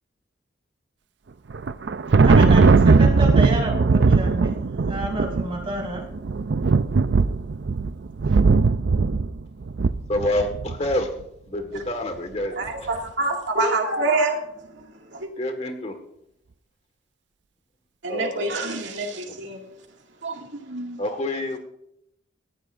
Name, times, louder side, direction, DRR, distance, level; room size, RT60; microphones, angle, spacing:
Thunder, 1.5-10.9, right 4 dB, 65° right, 0.5 m, -19 dB
voice 1, 2.2-6.1, right 1 dB, 30° right, -1 dB, 4.8 m, -30 dB
voice 2, 10.1-11.1 11.5-12.6 12.8-12.9 15.4-15.9 18.1-18.7 21.0-21.6, left 1 dB, 35° left, 6 dB, 1.6 m, -27 dB
voice 3, 12.6-14.4 15.1-15.3 18.0-19.6 20.2-21.0, right 2 dB, 85° right, 1 dB, 2.2 m, -26 dB
20.0 x 15.0 x 2.6 m, 0.77 s
head